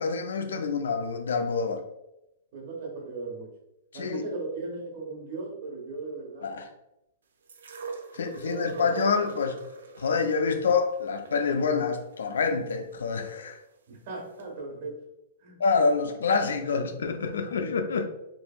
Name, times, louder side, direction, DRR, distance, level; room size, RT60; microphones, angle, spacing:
voice 1, 0.0-1.8 3.9-4.2 6.4-6.7 8.1-9.6 10.0-13.6 15.6-18.0, left 5 dB, 90° left, 0.4 m, -27 dB
voice 2, 2.5-3.5 3.9-6.5 8.1-9.0 13.9-15.0 15.4-15.6, right 3 dB, 45° right, 1.1 m, -37 dB
sound 1, 7.5-13.5 14.4-14.5, right 4 dB, 90° right, 0.4 m, -43 dB
2.9 x 2.5 x 2.2 m
hypercardioid pair, 150°, 0 cm